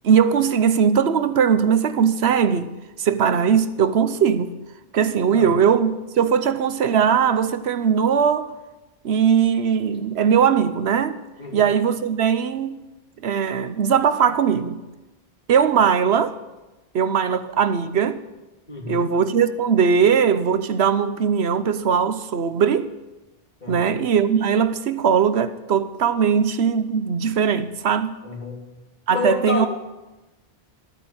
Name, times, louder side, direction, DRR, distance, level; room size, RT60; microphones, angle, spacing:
voice 1, 0.0-2.7 3.0-4.5 4.9-8.5 9.0-11.2 11.5-12.8 13.2-14.8 15.5-16.4 16.9-18.2 18.9-22.9 23.7-28.2 29.1-29.7, right 7 dB, 80° right, 1.1 m, -20 dB
voice 2, 18.7-19.0 23.6-23.9 28.2-28.6 29.1-29.7, left 3 dB, 45° left, 2.9 m, -29 dB
14.5 x 9.1 x 8.7 m
omnidirectional pair, 1.1 m